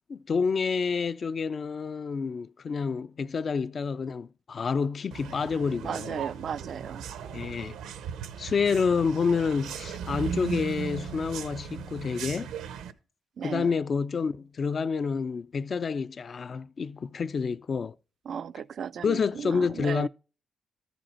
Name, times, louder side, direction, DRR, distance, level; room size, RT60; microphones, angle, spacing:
voice 1, 0.1-6.2 7.3-7.8 8.4-12.5 13.4-17.9 19.0-20.1, left 5 dB, 45° left, 0.4 m, -28 dB
sound 1, 5.1-12.9, right 7 dB, 90° right, 0.9 m, -37 dB
voice 2, 5.8-7.1 13.4-13.7 18.3-20.1, right 7 dB, 55° right, 0.3 m, -35 dB
14.0 x 5.1 x 4.3 m
cardioid pair, 90°, 0 cm